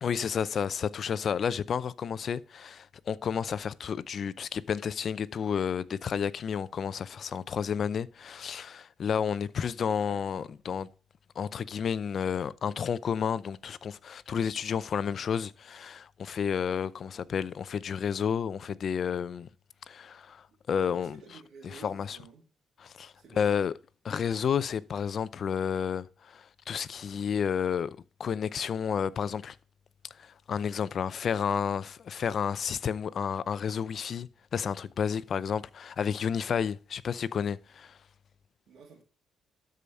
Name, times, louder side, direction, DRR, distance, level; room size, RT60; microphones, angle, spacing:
voice 1, 0.0-10.9 11.4-19.5 19.9-21.1 21.6-22.2 22.8-23.7 24.0-29.6 30.2-38.0, left 7 dB, 55° left, 0.6 m, -31 dB
voice 2, 20.8-22.4 23.2-23.6 38.7-39.0, right 4 dB, 70° right, 2.6 m, -51 dB
12.5 x 5.0 x 5.4 m
cardioid pair, 90°, 0 cm